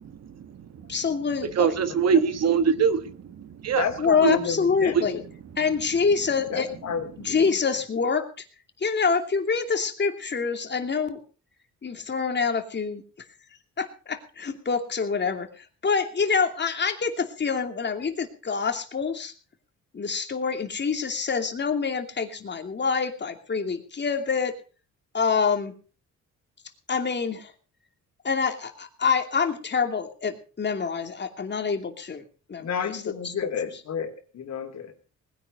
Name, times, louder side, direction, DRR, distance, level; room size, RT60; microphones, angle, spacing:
voice 1, 0.0-0.9 1.4-3.9 4.2-4.4 4.9-5.1, right 6 dB, 55° right, 12 dB, 1.4 m, -24 dB
voice 2, 0.9-1.7 4.0-5.2 5.6-6.7 7.2-8.3 8.8-11.2 11.8-13.0 13.8-19.3 19.9-24.5 25.1-25.7 26.9-27.5 28.2-32.2 32.5-33.3, left 5 dB, 35° left, 6 dB, 2.8 m, -26 dB
voice 3, 3.8-5.0 6.5-7.6 32.6-34.9, left 7 dB, 60° left, 5 dB, 3.4 m, -31 dB
20.0 x 10.0 x 5.5 m, 0.39 s
cardioid pair, 90°, 30 cm